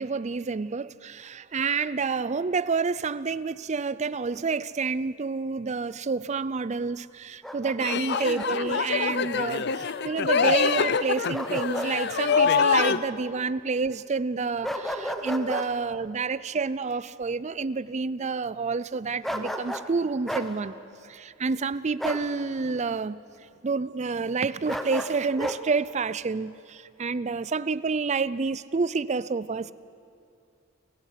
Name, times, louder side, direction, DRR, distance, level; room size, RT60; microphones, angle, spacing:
voice 1, 0.0-20.7 21.0-23.2 23.6-29.7, right 4 dB, 35° right, 0.5 m, -29 dB
Bark, 7.4-8.5 11.3-11.9 12.3-12.4 14.6-15.7 19.2-19.9 20.3-20.5 22.0-22.3 24.7-25.6, equal, ahead, 1.1 m, -32 dB
sound 1, 7.8-13.0, left 6 dB, 55° left, 0.6 m, -25 dB
29.5 x 14.5 x 8.2 m
head